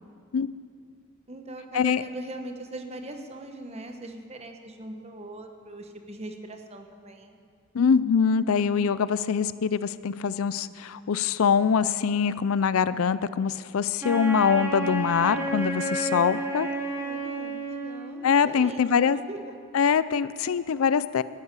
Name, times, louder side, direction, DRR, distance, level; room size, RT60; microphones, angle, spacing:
voice 1, 1.3-7.4 16.9-19.5, right 1 dB, 30° right, 4 dB, 1.1 m, -40 dB
voice 2, 7.7-16.7 18.2-19.2 19.7-21.2, left 6 dB, 75° left, 16 dB, 0.4 m, -23 dB
Wind instrument woodwind instrument, 14.0-18.4, right 1 dB, 10° right, 1.3 m, -31 dB
13.0 x 10.5 x 8.1 m, 2.2 s
head